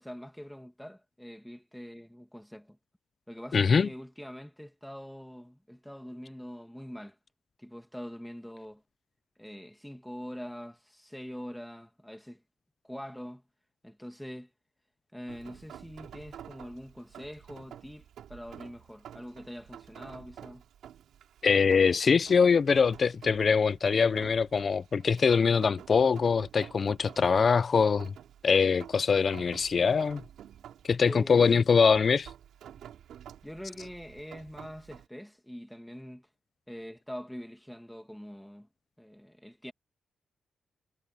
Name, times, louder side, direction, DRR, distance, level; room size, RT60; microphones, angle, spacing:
voice 1, 0.0-2.8 3.3-7.2 7.6-8.8 9.4-12.4 12.8-13.4 13.8-14.5 15.1-20.6 31.0-31.7 33.4-36.3 36.7-38.7 39.0-39.7, equal, ahead, 2.0 m, -44 dB
voice 2, 3.5-3.9 21.4-28.1 28.4-30.2 30.8-32.3, left 5 dB, 35° left, 0.4 m, -23 dB
Rain, 15.3-35.1, right 10 dB, 85° right, 4.7 m, -50 dB
wide cardioid pair, 180°, 0 cm